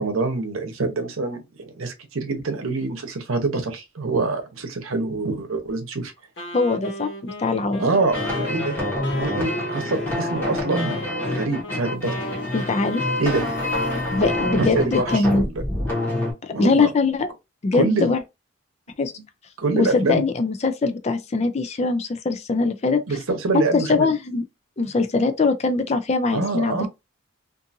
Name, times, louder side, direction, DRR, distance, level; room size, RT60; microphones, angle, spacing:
voice 1, 0.0-1.4 1.8-6.1 7.8-8.8 9.1-11.0 11.3-12.2 13.2-13.4 14.5-15.6 16.5-16.9 17.8-18.1 19.6-20.2 23.1-24.1 26.3-26.9, right 3 dB, 90° right, 0.8 m, -25 dB
Wind instrument woodwind instrument, 6.4-13.5, equal, 65° left, 1.1 m, -37 dB
voice 2, 6.5-7.8 12.5-13.0 14.1-15.4 16.4-17.3 17.6-18.2 19.0-19.1 19.8-23.0 23.7-24.4 24.8-26.9, left 3 dB, 30° left, 0.3 m, -22 dB
sound 1, 8.1-16.3, left 1 dB, 10° left, 1.0 m, -26 dB
sound 2, 11.6-15.4, equal, 25° right, 1.1 m, -45 dB
2.6 x 2.5 x 2.6 m
head